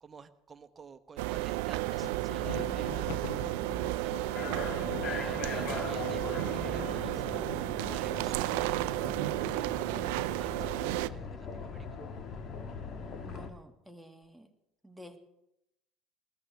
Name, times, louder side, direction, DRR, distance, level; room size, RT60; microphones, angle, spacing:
voice 1, 0.0-3.7 4.0-7.5 7.9-12.0, right 5 dB, 30° right, 9 dB, 1.0 m, -52 dB
sound 1, 1.2-11.1, right 19 dB, 70° right, 0.4 m, -33 dB
Thunder, 1.7-9.0, left 9 dB, 75° left, 1.0 m, -44 dB
sound 2, 4.3-13.5, left 4 dB, 50° left, 1.7 m, -41 dB
voice 2, 13.2-14.5 14.8-15.2, equal, ahead, 3 dB, 1.9 m, -50 dB
19.5 x 14.0 x 3.5 m, 0.84 s
hypercardioid pair, 70°, 0 cm